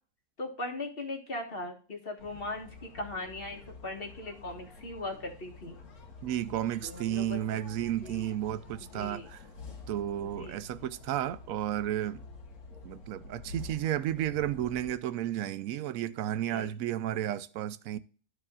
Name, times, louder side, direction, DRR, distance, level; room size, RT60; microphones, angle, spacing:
voice 1, 0.4-5.8 6.8-7.4 8.0-8.3 8.8-9.3 10.4-10.7 16.3-16.7, left 2 dB, 40° left, 1.8 m, -39 dB
sound 1, 2.2-14.9, left 3 dB, 75° left, 1.9 m, -49 dB
voice 2, 6.2-9.4 9.9-12.2 12.8-18.0, right 12 dB, 70° right, 1.0 m, -32 dB
13.5 x 4.9 x 2.4 m
omnidirectional pair, 1.6 m